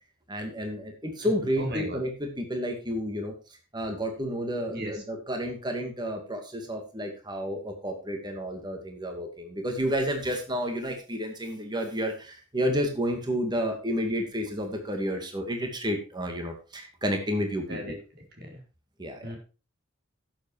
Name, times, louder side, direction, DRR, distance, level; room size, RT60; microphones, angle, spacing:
voice 1, 0.3-3.3 3.7-18.0 19.0-19.3, equal, 20° right, 4 dB, 2.3 m, -31 dB
voice 2, 1.6-2.0 4.7-4.9 17.7-17.9 19.2-19.4, equal, 55° right, 1 dB, 4.3 m, -34 dB
11.5 x 7.8 x 4.7 m, 0.33 s
head